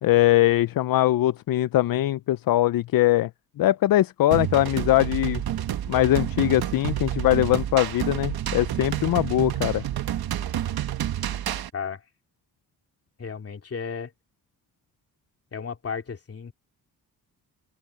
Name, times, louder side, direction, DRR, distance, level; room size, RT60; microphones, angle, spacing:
voice 1, 0.0-3.3 3.6-5.4 5.9-9.8, left 15 dB, 70° left, 0.5 m, -21 dB
sound 1, 4.3-11.7, right 11 dB, 80° right, 1.2 m, -29 dB
voice 2, 11.7-12.0 13.2-14.1 15.5-16.5, left 6 dB, 40° left, 2.8 m, -34 dB
cardioid pair, 125°, 36 cm